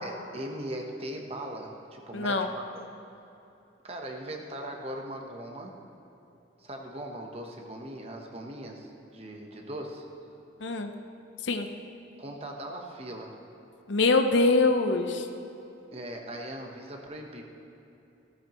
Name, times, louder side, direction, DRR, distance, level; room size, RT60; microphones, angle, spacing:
voice 1, 0.0-2.6 3.8-5.8 6.6-10.1 12.2-13.4 15.9-17.4, right 1 dB, 30° right, 2 dB, 1.1 m, -39 dB
voice 2, 2.1-2.5 10.6-10.9 11.4-11.7 13.9-15.3, left 3 dB, 75° left, 6 dB, 0.8 m, -24 dB
17.0 x 13.5 x 3.1 m, 2.8 s
head